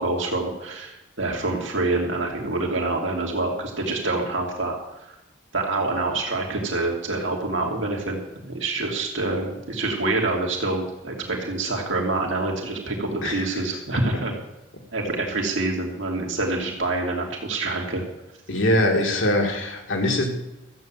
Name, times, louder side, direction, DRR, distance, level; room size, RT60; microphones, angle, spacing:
voice 1, 0.0-4.7 5.5-8.2 8.5-14.3 14.9-18.0, right 2 dB, 70° right, 0 dB, 2.5 m, -26 dB
voice 2, 13.2-13.8 18.5-20.3, left 1 dB, 75° left, 2 dB, 2.2 m, -23 dB
14.0 x 8.5 x 7.4 m, 0.95 s
head